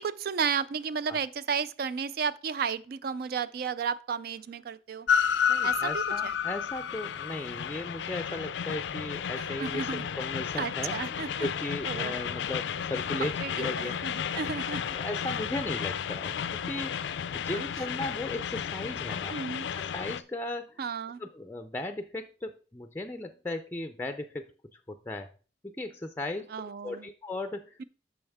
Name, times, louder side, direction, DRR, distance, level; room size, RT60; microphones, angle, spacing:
voice 1, 0.0-5.1 5.6-6.3 9.4-10.0 10.6-11.5 11.8-12.1 13.2-15.0 17.5-17.6 19.3-19.7 20.8-21.2 26.5-27.1, right 6 dB, 55° right, 0.4 m, -33 dB
Train, 5.1-20.2, left 7 dB, 75° left, 0.4 m, -32 dB
voice 2, 5.5-13.9 14.3-14.4 14.9-16.3 16.6-17.1 17.3-19.4 19.8-20.8 21.2-25.3 25.6-27.8, left 2 dB, 10° left, 0.4 m, -37 dB
8.7 x 6.3 x 3.5 m
head